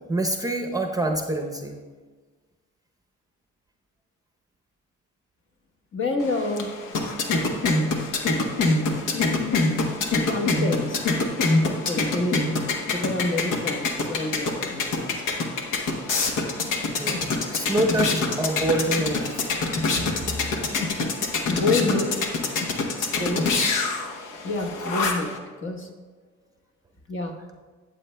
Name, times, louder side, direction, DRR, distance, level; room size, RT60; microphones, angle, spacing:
voice 1, 0.1-1.8 17.0-19.4, right 2 dB, 10° right, 3 dB, 0.7 m, -26 dB
voice 2, 5.9-6.7 9.1-9.8 10.2-11.1 11.6-12.5 12.9-15.2 16.3-16.5 20.0-20.1 21.5-22.3 23.0-23.5 24.4-25.9 27.1-27.4, left 2 dB, 40° left, 2 dB, 1.2 m, -28 dB
sound 1, 6.2-25.4, left 3 dB, 90° left, 1.0 m, -26 dB
12.5 x 8.0 x 2.2 m, 1.4 s
cardioid pair, 90°, 30 cm